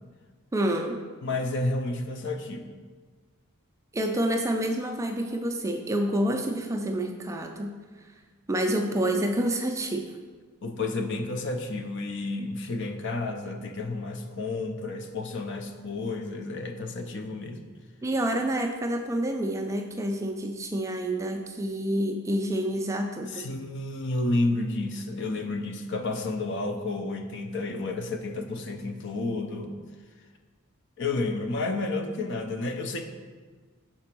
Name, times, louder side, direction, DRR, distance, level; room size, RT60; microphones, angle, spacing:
voice 1, 0.5-1.0 3.9-7.7 8.5-10.1 18.0-23.5, right 1 dB, 15° right, 3 dB, 0.3 m, -28 dB
voice 2, 1.2-2.7 10.6-17.7 23.3-29.8 31.0-33.0, left 2 dB, 55° left, 5 dB, 0.5 m, -31 dB
5.9 x 4.2 x 4.4 m, 1.5 s
head